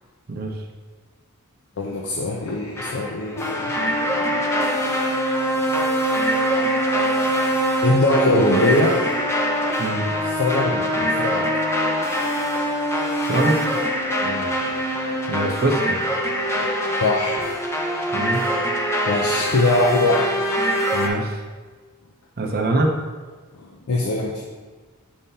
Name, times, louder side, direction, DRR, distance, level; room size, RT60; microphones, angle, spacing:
voice 1, 0.3-0.6 9.8-10.1 13.3-13.8 15.3-16.0 18.1-18.4 20.9-21.4 22.4-22.9, right 2 dB, 45° right, 2 dB, 0.6 m, -23 dB
voice 2, 1.8-4.5 7.8-8.9 10.0-11.5 14.2-15.3 16.5-16.7 17.0-17.6 19.1-20.3 23.5-24.4, left 2 dB, 75° left, -1 dB, 0.6 m, -23 dB
sound 1, 2.8-21.1, equal, 10° left, 0.5 m, -23 dB
6.6 x 5.5 x 2.8 m, 1.4 s
head